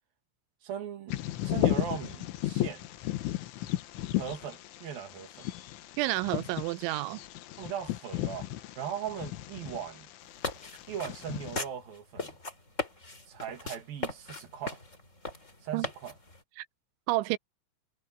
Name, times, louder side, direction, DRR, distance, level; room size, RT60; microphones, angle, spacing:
voice 1, 0.6-2.8 4.1-5.5 7.6-10.1 10.9-12.3 13.3-14.8 15.6-16.1, right 9 dB, 55° right, 3.3 m, -39 dB
Bird vocalization bird call bird song, 1.1-11.6, left 15 dB, 75° left, 3.6 m, -34 dB
voice 2, 6.0-7.2 15.7-15.9 16.6-16.7 17.1-17.4, right 19 dB, 85° right, 2.9 m, -30 dB
sound 1, 10.2-16.4, left 2 dB, 15° left, 4.1 m, -38 dB
omnidirectional pair, 5.9 m